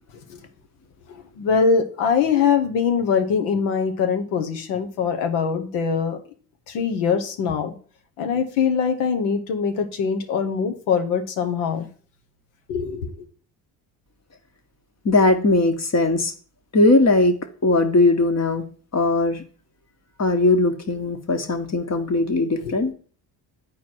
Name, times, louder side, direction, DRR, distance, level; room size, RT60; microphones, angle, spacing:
voice 1, 1.1-6.2 6.7-7.7 8.2-11.9 12.7-13.1 22.5-22.7, left 6 dB, 90° left, 1.1 m, -23 dB
voice 2, 15.0-16.3 16.7-17.4 17.6-18.6 18.9-19.4 20.2-22.9, left 2 dB, 35° left, 1.4 m, -19 dB
9.3 x 4.4 x 4.4 m
supercardioid pair, 65°, 47 cm